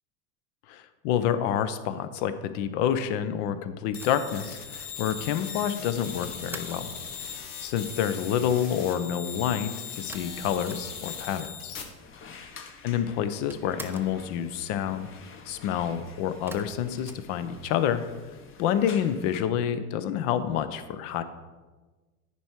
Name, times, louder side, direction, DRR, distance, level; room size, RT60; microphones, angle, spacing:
voice 1, 0.7-6.9 7.4-11.8 12.8-15.1 15.5-18.0 18.6-21.2, left 9 dB, 55° left, 11 dB, 0.8 m, -28 dB
sound 1, 3.9-11.8, left 7 dB, 80° left, 1.5 m, -39 dB
sound 2, 3.9-7.0 10.1-11.3 11.5-11.6 11.8-12.6 12.9-14.2 16.5-18.0, right 3 dB, 5° right, 0.5 m, -46 dB
sound 3, 12.0-19.4, left 5 dB, 25° left, 0.9 m, -48 dB
10.0 x 4.6 x 4.7 m, 1.3 s
hypercardioid pair, 100°, 46 cm